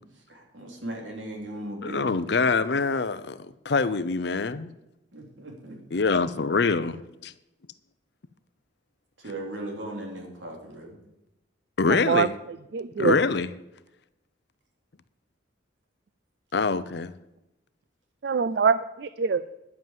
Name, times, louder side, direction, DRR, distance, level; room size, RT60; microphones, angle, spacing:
voice 1, 0.3-2.4 5.1-5.8 9.2-11.0, right 1 dB, 80° right, 3.5 m, -38 dB
voice 2, 1.8-4.7 5.9-7.3 11.8-12.3 13.0-13.5 16.5-17.1, left 4 dB, 60° left, 0.6 m, -25 dB
voice 3, 11.9-12.3 12.7-13.2 18.2-19.4, right 5 dB, 60° right, 0.4 m, -24 dB
11.0 x 8.0 x 7.5 m
head